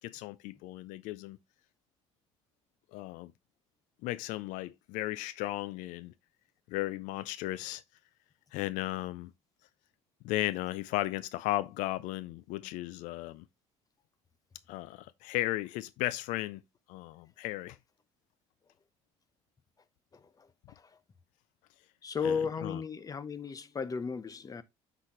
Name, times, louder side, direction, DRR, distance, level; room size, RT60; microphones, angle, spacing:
voice 1, 0.0-1.4 2.9-3.3 4.0-6.1 6.7-7.8 8.5-9.3 10.2-13.4 14.7-16.6 16.9-17.8 22.2-22.8, left 17 dB, 85° left, 0.4 m, -35 dB
voice 2, 20.1-20.5 20.8-20.9 22.0-24.6, left 6 dB, 30° left, 0.8 m, -35 dB
9.8 x 4.1 x 3.1 m
cardioid pair, 100°, 13 cm